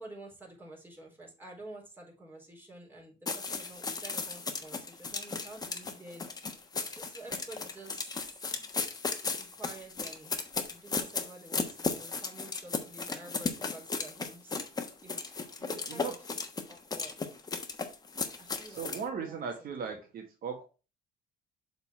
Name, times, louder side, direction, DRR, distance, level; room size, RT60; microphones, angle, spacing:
voice 1, 0.0-6.6 6.9-8.2 8.5-8.6 9.4-14.6 15.0-16.4 16.7-17.2 18.4-20.0, right 2 dB, 10° right, -3 dB, 4.2 m, -50 dB
sound 1, 3.3-19.0, left 4 dB, 25° left, 1.2 m, -36 dB
voice 2, 15.6-16.1 18.7-20.6, right 6 dB, 60° right, 3 dB, 1.5 m, -38 dB
7.0 x 4.1 x 5.6 m, 0.32 s
cardioid pair, 110°, 17 cm